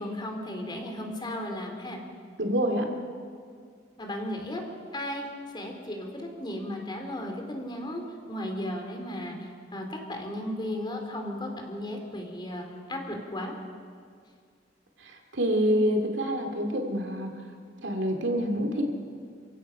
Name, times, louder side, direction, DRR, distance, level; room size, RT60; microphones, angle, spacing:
voice 1, 0.0-2.0 4.0-4.6 4.9-5.3 5.5-8.0 8.3-13.5, left 1 dB, 25° left, 3 dB, 3.0 m, -35 dB
voice 2, 2.4-2.9 15.0-17.3 17.8-18.8, equal, 75° right, 3 dB, 2.6 m, -26 dB
29.5 x 16.0 x 5.8 m, 2.1 s
head